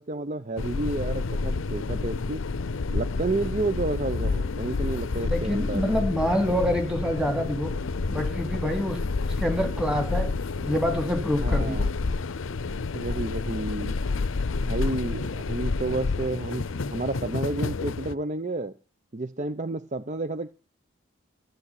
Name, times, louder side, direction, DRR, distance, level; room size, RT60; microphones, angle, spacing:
voice 1, 0.0-2.4 2.9-5.8 11.4-11.9 12.9-14.0 14.6-18.7 19.1-20.5, right 2 dB, 35° right, 0.7 m, -31 dB
sound 1, 0.6-18.1, left 3 dB, 80° left, 0.6 m, -29 dB
voice 2, 5.1-7.7 8.1-9.0 9.4-10.3 10.6-11.8, equal, 5° right, 2.9 m, -26 dB
13.5 x 7.9 x 9.8 m
head